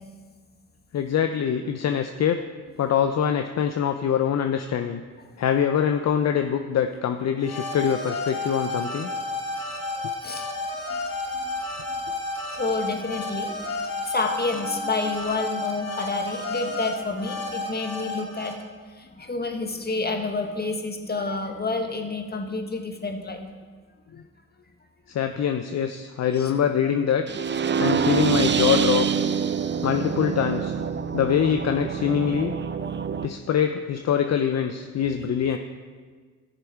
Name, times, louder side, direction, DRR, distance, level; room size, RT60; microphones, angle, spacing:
voice 1, 0.9-2.4 2.8-5.0 5.4-9.1 25.1-27.2 27.8-29.1 29.8-30.7 31.1-32.6 33.2-35.6, left 8 dB, 55° left, 7 dB, 0.6 m, -24 dB
sound 1, 7.4-18.5, left 2 dB, 90° left, 1.5 m, -31 dB
voice 2, 9.9-10.5 12.5-13.5 14.1-18.5 19.2-23.4 26.3-26.5 27.8-28.0 29.4-29.5, left 3 dB, 30° left, 4 dB, 1.7 m, -29 dB
sound 2, 27.3-33.3, right 7 dB, 35° right, 0.6 m, -25 dB
14.5 x 6.8 x 4.6 m, 1.5 s
supercardioid pair, 60°, 32 cm